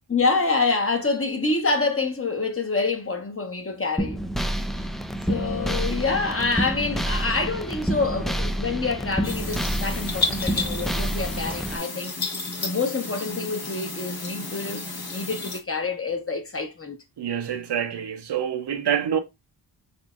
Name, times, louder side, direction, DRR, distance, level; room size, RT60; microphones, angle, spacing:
voice 1, 0.1-4.2 5.2-12.1 12.6-14.8 15.1-17.0, left 3 dB, 30° left, 1.1 m, -26 dB
sound 1, 4.0-11.8, right 1 dB, ahead, 0.3 m, -28 dB
sound 2, 9.2-15.6, left 3 dB, 55° left, 1.3 m, -32 dB
voice 2, 17.2-19.2, right 9 dB, 65° right, 0.8 m, -26 dB
4.3 x 3.5 x 2.4 m
cardioid pair, 55°, 45 cm